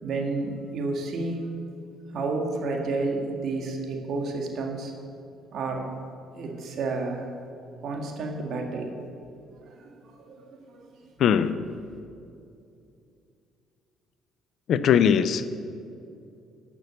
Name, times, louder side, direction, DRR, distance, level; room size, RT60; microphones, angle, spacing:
voice 1, 0.0-1.5 2.1-4.9 5.5-5.9 6.3-7.3 7.8-8.9 9.7-10.9, right 3 dB, 60° right, 2 dB, 2.0 m, -31 dB
voice 2, 11.2-11.5 14.7-15.5, left 8 dB, 65° left, 14 dB, 0.5 m, -20 dB
12.0 x 6.1 x 8.2 m, 2.5 s
hypercardioid pair, 60°, 0 cm